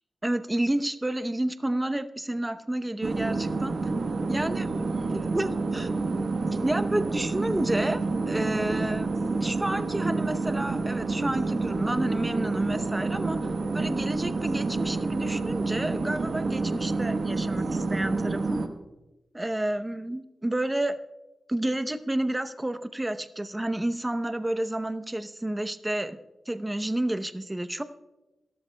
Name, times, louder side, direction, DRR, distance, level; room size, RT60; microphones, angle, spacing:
voice 1, 0.2-3.7 4.3-4.7 5.1-5.9 6.6-9.1 9.4-18.6 19.3-21.0 21.5-26.2 26.5-27.8, right 1 dB, 15° right, 10 dB, 0.8 m, -30 dB
sound 1, 3.0-18.7, right 3 dB, 70° right, 1.2 m, -28 dB
26.5 x 13.5 x 2.3 m, 1.0 s
wide cardioid pair, 75°, 0 cm